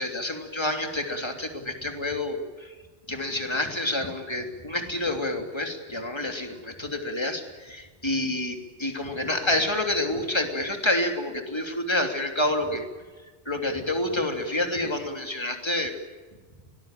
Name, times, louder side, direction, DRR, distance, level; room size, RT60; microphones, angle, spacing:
voice 1, 0.0-2.7 3.1-12.8 13.4-15.9, left 1 dB, 25° left, 4 dB, 3.2 m, -28 dB
24.5 x 19.5 x 9.1 m, 1.4 s
omnidirectional pair, 1.2 m